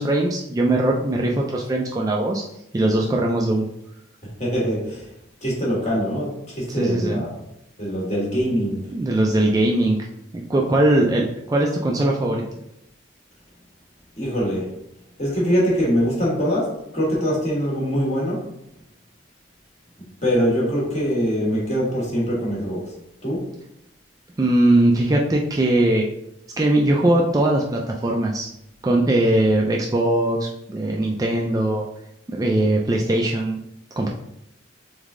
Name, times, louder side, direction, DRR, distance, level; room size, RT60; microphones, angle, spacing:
voice 1, 0.0-2.4 2.7-3.6 6.8-7.2 8.9-10.1 10.3-12.4 24.4-26.1 26.6-28.5 28.8-31.9 32.3-33.6 34.0-34.1, right 1 dB, 20° right, -1 dB, 0.3 m, -20 dB
voice 2, 4.4-5.1 5.4-7.3 7.8-8.9 14.2-14.7 15.2-18.5 20.2-22.9 23.2-23.5, equal, 35° left, -5 dB, 1.5 m, -23 dB
3.6 x 3.5 x 3.6 m, 0.81 s
head